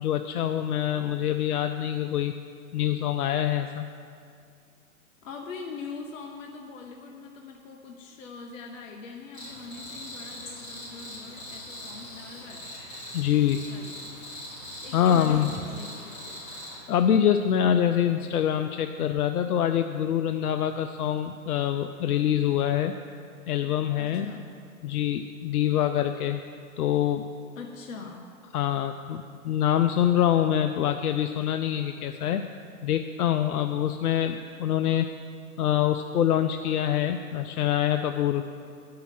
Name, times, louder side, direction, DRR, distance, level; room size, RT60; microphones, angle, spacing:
voice 1, 0.0-2.3 2.7-3.9 13.1-13.6 14.9-15.5 16.9-22.9 23.5-24.3 24.8-26.4 26.8-27.3 28.5-32.5 32.8-35.1 35.6-38.4, left 10 dB, 90° left, 8 dB, 0.6 m, -25 dB
voice 2, 5.2-12.7 13.7-14.1 14.8-16.4 23.9-24.5 27.6-28.3, left 4 dB, 60° left, 2 dB, 0.9 m, -42 dB
Cricket, 9.3-16.8, left 1 dB, 25° left, 2.6 m, -41 dB
9.4 x 5.7 x 7.4 m, 2.4 s
hypercardioid pair, 155°, 44 cm